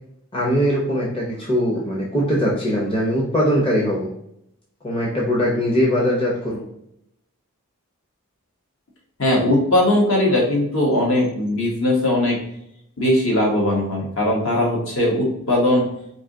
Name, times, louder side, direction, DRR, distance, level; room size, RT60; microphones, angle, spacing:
voice 1, 0.3-4.1 4.8-6.6, equal, 25° left, -4 dB, 0.7 m, -21 dB
voice 2, 9.2-12.4 13.0-15.8, left 1 dB, 65° left, -2 dB, 1.5 m, -19 dB
4.7 x 2.8 x 3.8 m, 0.74 s
head